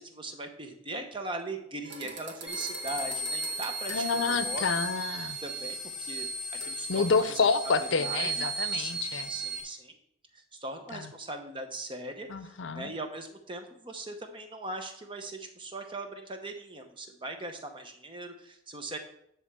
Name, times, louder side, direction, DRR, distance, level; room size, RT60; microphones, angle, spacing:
voice 1, 0.0-4.6 5.4-6.3 6.6-7.4 7.8-8.5 8.7-10.0 10.3-19.0, right 2 dB, 25° right, 5 dB, 0.9 m, -40 dB
sound 1, 1.8-4.6 6.6-6.8 7.1-7.5, right 3 dB, 70° right, 1.8 m, -45 dB
sound 2, 2.5-9.6, right 2 dB, 5° right, 2.3 m, -35 dB
voice 2, 3.9-5.4 6.9-9.3 10.9-11.1 12.3-12.9, left 4 dB, 80° left, 12 dB, 0.6 m, -28 dB
10.5 x 3.5 x 6.7 m, 0.74 s
head